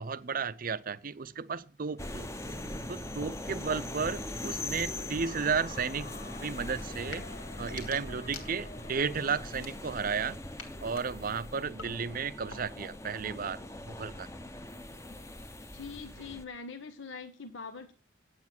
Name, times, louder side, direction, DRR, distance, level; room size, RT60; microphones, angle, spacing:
voice 1, 0.0-2.3 2.9-6.1 6.4-7.3 7.6-10.4 10.8-14.3, right 5 dB, 45° right, 0.6 m, -34 dB
sound 1, 2.0-16.4, left 1 dB, 15° left, 0.9 m, -41 dB
voice 2, 4.4-5.2 15.7-17.9, left 4 dB, 70° left, 1.1 m, -44 dB
sound 2, 5.2-10.2, left 4 dB, 45° left, 0.7 m, -50 dB
Knuckles Cracking, 7.1-7.3 7.6-8.9 9.5-10.2 10.6-12.9, left 5 dB, 90° left, 2.9 m, -49 dB
9.6 x 8.7 x 6.1 m
head